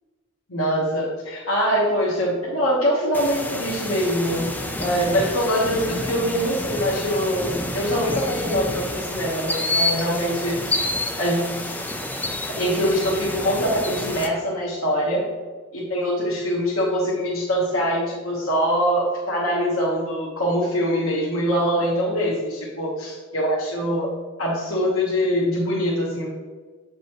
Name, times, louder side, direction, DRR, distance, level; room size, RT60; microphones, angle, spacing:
voice 1, 0.5-4.5 4.8-10.8 11.2-11.8 12.5-15.2 15.7-24.1 24.4-26.3, equal, 85° left, -5 dB, 1.3 m, -23 dB
sound 1, 3.1-14.3, left 1 dB, 10° left, 0.4 m, -29 dB
7.6 x 5.2 x 3.0 m, 1.4 s
head